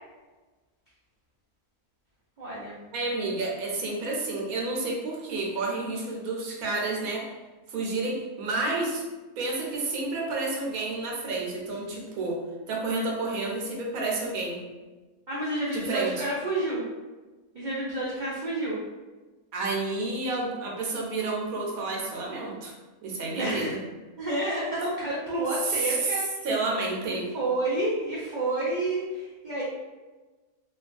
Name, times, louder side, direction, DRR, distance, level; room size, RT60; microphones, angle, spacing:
voice 1, 2.4-2.8 15.3-16.8 17.5-18.8 23.3-23.7 24.2-26.2 27.3-29.6, right 2 dB, 65° right, -7 dB, 0.4 m, -29 dB
voice 2, 2.9-7.3 7.7-9.0 9.4-12.4 12.7-14.6 15.7-16.2 19.5-22.7 23.0-23.8 25.6-26.2 26.4-27.3, right 3 dB, 85° right, -2 dB, 1.1 m, -30 dB
3.0 x 2.3 x 2.5 m, 1.2 s
omnidirectional pair, 1.5 m